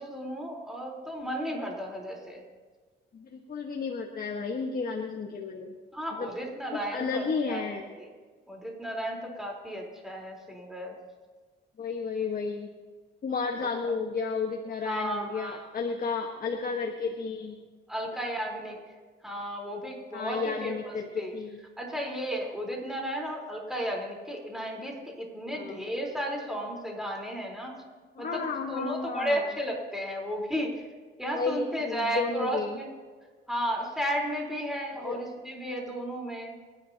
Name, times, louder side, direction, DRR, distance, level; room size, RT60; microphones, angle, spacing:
voice 1, 0.0-2.4 5.9-8.1 8.5-10.9 13.6-13.7 14.8-15.7 17.9-18.8 19.2-21.3 21.8-27.8 28.2-30.8 31.2-32.9 33.5-36.6, equal, ahead, -1 dB, 4.1 m, -34 dB
voice 2, 3.1-5.7 6.2-6.3 6.7-7.8 11.8-12.7 13.2-17.6 20.1-21.6 25.5-25.8 28.2-29.4 31.3-32.8 35.0-35.2, left 4 dB, 45° left, 2 dB, 1.5 m, -32 dB
28.5 x 11.0 x 2.9 m, 1.5 s
cardioid pair, 90°, 20 cm